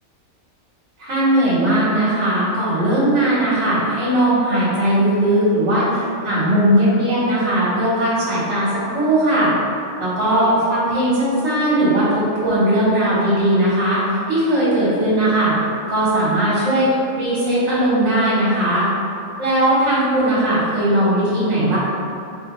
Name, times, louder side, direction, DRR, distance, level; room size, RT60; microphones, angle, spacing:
voice 1, 1.0-9.5 10.0-14.0 14.3-15.5 15.9-16.9 17.2-18.9 19.4-21.8, right 1 dB, 60° right, -8 dB, 1.2 m, -18 dB
4.8 x 2.6 x 2.9 m, 2.6 s
omnidirectional pair, 1.4 m